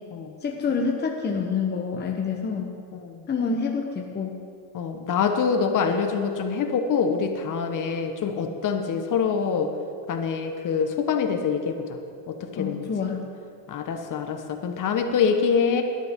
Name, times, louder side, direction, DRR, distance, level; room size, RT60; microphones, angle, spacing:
voice 1, 0.4-2.8 3.3-4.4 12.6-13.2, left 5 dB, 20° left, 1 dB, 1.0 m, -27 dB
voice 2, 2.9-3.2 4.7-9.7 10.1-12.0 12.3-12.9 13.7-15.8, left 6 dB, 40° left, 5 dB, 1.4 m, -25 dB
18.0 x 11.5 x 3.8 m, 2.4 s
supercardioid pair, 115°, 49 cm